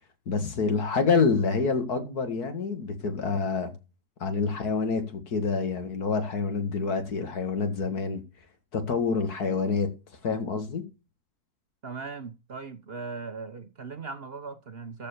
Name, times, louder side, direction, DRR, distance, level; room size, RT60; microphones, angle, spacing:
voice 1, 0.3-3.7 4.2-8.2 8.7-9.9 10.2-10.8, left 4 dB, 70° left, 2.5 m, -27 dB
voice 2, 11.8-15.1, right 4 dB, 45° right, 1.0 m, -39 dB
13.5 x 4.8 x 6.8 m
omnidirectional pair, 1.7 m